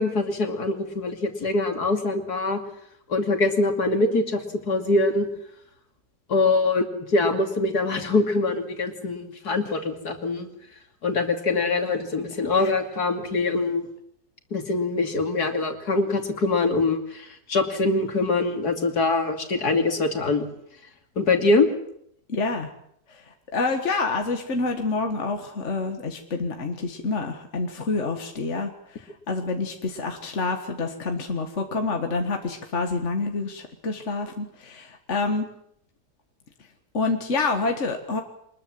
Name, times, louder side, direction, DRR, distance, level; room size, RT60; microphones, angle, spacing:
voice 1, 0.0-2.6 3.1-4.4 4.7-5.3 6.3-10.5 11.0-13.9 14.5-20.5 21.2-21.7, left 3 dB, 75° left, 6 dB, 3.1 m, -23 dB
voice 2, 22.3-22.7 23.1-35.5 36.9-38.2, left 3 dB, 45° left, 5 dB, 2.0 m, -28 dB
24.5 x 21.0 x 7.7 m, 0.70 s
omnidirectional pair, 1.7 m